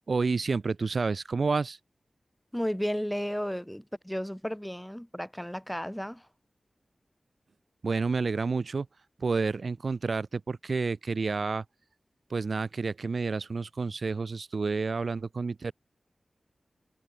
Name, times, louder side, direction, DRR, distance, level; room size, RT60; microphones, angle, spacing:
voice 1, 0.1-1.8 7.8-8.9 9.2-11.6 12.3-15.7, right 4 dB, 65° right, 0.4 m, -29 dB
voice 2, 2.5-6.3, equal, 5° left, 1.6 m, -33 dB
wide cardioid pair, 95°, 0 cm